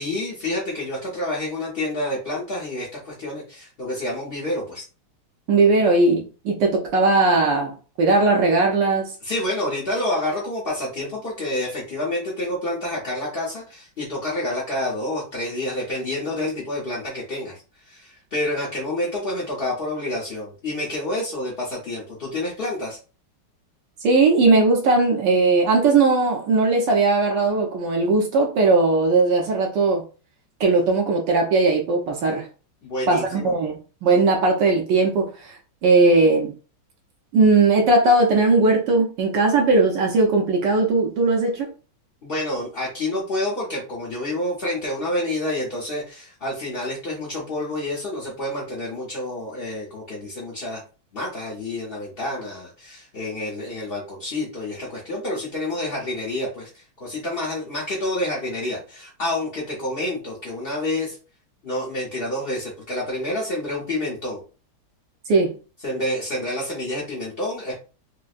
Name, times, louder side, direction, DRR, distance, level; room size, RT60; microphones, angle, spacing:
voice 1, 0.0-4.8 9.2-23.0 32.8-33.5 42.2-50.8 51.1-61.2 61.6-64.4 65.8-67.7, left 1 dB, 50° left, 0.7 m, -28 dB
voice 2, 5.5-9.1 24.0-30.0 30.6-32.5 33.1-36.5 37.3-41.7 65.3-65.5, right 3 dB, 70° right, 1.2 m, -18 dB
4.5 x 2.1 x 2.4 m
omnidirectional pair, 2.3 m